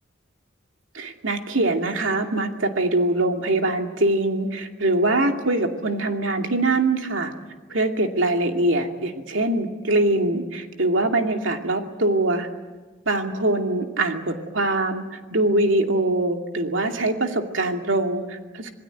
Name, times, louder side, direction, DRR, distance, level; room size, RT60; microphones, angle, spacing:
voice 1, 0.9-7.3 7.7-12.5 13.1-18.7, right 2 dB, 85° right, 4 dB, 2.5 m, -23 dB
27.0 x 19.5 x 9.3 m, 1.3 s
head